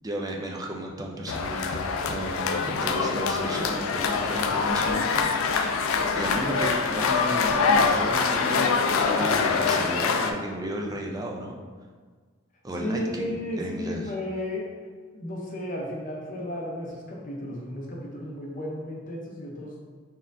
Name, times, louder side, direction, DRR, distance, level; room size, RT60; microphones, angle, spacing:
voice 1, 0.0-5.3 6.1-8.7 9.0-11.6 12.6-14.1, right 1 dB, 15° right, 0 dB, 0.4 m, -33 dB
sound 1, 1.3-10.3, left 5 dB, 75° left, 0.3 m, -24 dB
voice 2, 12.8-14.6 15.1-19.7, left 1 dB, 40° left, -2 dB, 0.7 m, -33 dB
4.2 x 3.6 x 2.6 m, 1.5 s
head